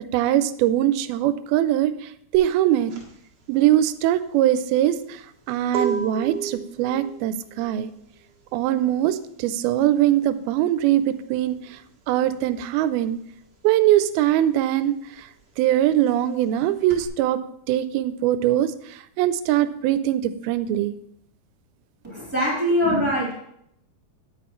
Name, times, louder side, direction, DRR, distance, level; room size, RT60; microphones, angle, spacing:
voice 1, 0.1-1.9 2.3-2.9 3.5-5.2 5.5-7.9 8.5-11.6 12.1-13.2 13.6-14.9 15.6-17.4 17.7-18.7 19.2-21.0, right 12 dB, 90° right, 13 dB, 2.5 m, -21 dB
sound 1, 2.3-12.6 12.8-17.1, right 7 dB, 50° right, 1.2 m, -34 dB
voice 2, 22.0-23.4, equal, 5° right, -6 dB, 3.6 m, -22 dB
9.6 x 9.2 x 3.1 m, 0.72 s
omnidirectional pair, 4.3 m